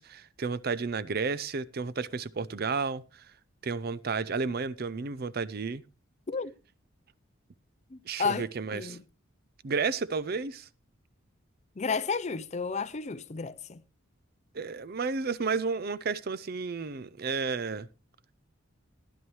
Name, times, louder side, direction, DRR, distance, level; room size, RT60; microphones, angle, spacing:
voice 1, 0.0-3.2 3.6-5.8 8.1-9.0 9.6-10.7 14.5-17.9, right 4 dB, 45° right, 0.5 m, -32 dB
voice 2, 7.9-9.0 11.8-13.8, left 5 dB, 30° left, 0.5 m, -32 dB
15.5 x 10.5 x 3.1 m
head